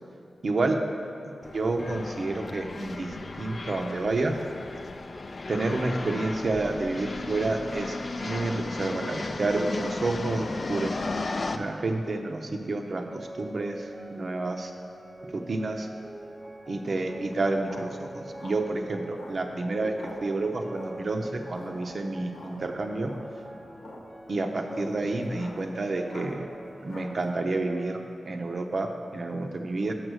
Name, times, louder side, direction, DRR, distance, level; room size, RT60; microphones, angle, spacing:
voice 1, 0.4-0.8 1.3-4.4 5.5-8.0 8.2-10.9 11.5-14.7 15.3-15.9 16.7-23.1 24.3-26.5 26.8-28.0 28.3-29.9, right 2 dB, 60° right, 4 dB, 0.6 m, -29 dB
sound 1, 1.4-11.6, left 3 dB, 55° left, 0.4 m, -35 dB
sound 2, 12.9-28.1, right 1 dB, 15° right, 0.8 m, -45 dB
sound 3, 17.1-27.3, left 1 dB, 85° left, 1.1 m, -46 dB
6.3 x 5.9 x 6.3 m, 2.6 s
cardioid pair, 55°, 0 cm